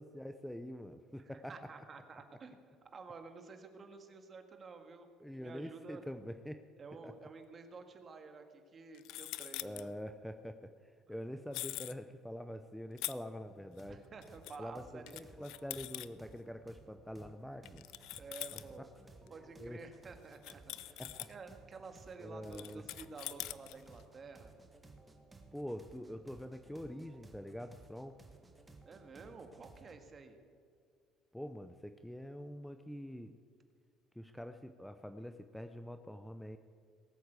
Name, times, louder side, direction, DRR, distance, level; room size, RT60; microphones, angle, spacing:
voice 1, 0.0-1.5 5.2-6.6 7.0-7.1 9.6-14.0 14.6-17.8 18.5-18.6 18.9-19.1 19.4-19.8 21.0-21.3 22.2-22.8 25.5-28.2 31.3-33.4 34.2-36.6, equal, ahead, 8 dB, 0.6 m, -45 dB
voice 2, 1.2-2.6 2.9-5.1 5.3-6.0 6.8-9.9 13.9-15.2 18.2-18.9 19.3-21.0 21.3-24.5 28.9-30.4, right 4 dB, 30° right, 6 dB, 1.8 m, -51 dB
sound 1, 7.1-7.2 8.9-9.9 11.5-11.9 13.0-13.1 13.8-13.9 14.2-14.6 15.1-16.1 17.7-18.7 19.3-19.4 19.8-19.9 20.3-21.3 22.5-24.0, left 17 dB, 75° left, 0.5 m, -43 dB
sound 2, 13.5-29.9, right 3 dB, 15° right, 1.7 m, -59 dB
19.0 x 8.5 x 8.1 m, 2.2 s
cardioid pair, 120°, 0 cm